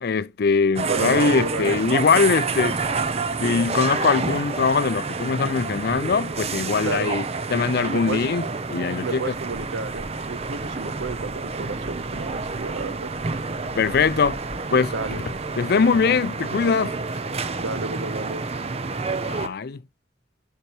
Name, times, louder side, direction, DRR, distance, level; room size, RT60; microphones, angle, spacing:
voice 1, 0.0-2.8 3.4-7.2 7.5-8.4 8.7-9.3 13.8-14.4 14.7-14.9 15.6-16.9 19.2-19.8, left 5 dB, 55° left, 0.5 m, -22 dB
sound 1, 0.8-19.5, right 4 dB, 35° right, 0.6 m, -29 dB
voice 2, 0.8-1.8 6.8-7.1 7.8-8.2 9.0-13.1 14.9-15.2 17.6-18.5, right 3 dB, 70° right, 0.7 m, -31 dB
sound 2, 9.3-17.0, left 1 dB, 25° left, 1.5 m, -44 dB
12.0 x 4.5 x 2.9 m
head